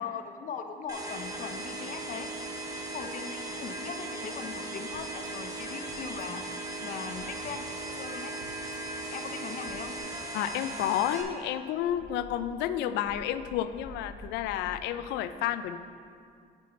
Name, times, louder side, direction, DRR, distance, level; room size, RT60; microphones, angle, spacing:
voice 1, 0.0-2.3 2.9-6.4 6.8-8.4 9.1-10.0, left 6 dB, 50° left, 7 dB, 0.7 m, -40 dB
sound 1, 0.9-11.2, right 2 dB, 20° right, 1.3 m, -38 dB
sound 2, 4.9-5.3 5.6-6.3 6.5-7.8 8.1-10.0, right 3 dB, 65° right, 1.4 m, -54 dB
voice 2, 10.3-15.8, left 11 dB, 90° left, 12 dB, 0.4 m, -31 dB
Dog, 11.1-14.9, left 1 dB, 20° left, 0.9 m, -49 dB
8.6 x 8.3 x 3.2 m, 2.3 s
cardioid pair, 110°, 17 cm